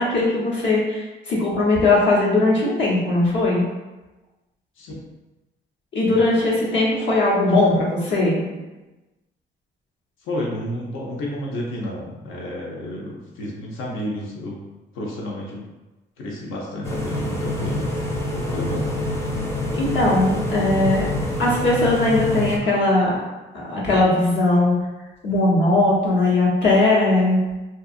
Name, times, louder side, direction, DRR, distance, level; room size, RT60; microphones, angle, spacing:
voice 1, 0.0-3.6 5.9-8.6 19.7-21.1 21.4-23.2 23.6-24.7 25.2-27.4, left 2 dB, 65° left, -5 dB, 1.0 m, -19 dB
voice 2, 10.2-14.6 14.9-15.6 16.2-17.9 18.3-18.9, left 1 dB, 90° left, -3 dB, 0.7 m, -31 dB
sound 1, 16.8-22.6, left 1 dB, 15° left, 0.5 m, -26 dB
2.7 x 2.4 x 2.4 m, 1.1 s
cardioid pair, 90°, 20 cm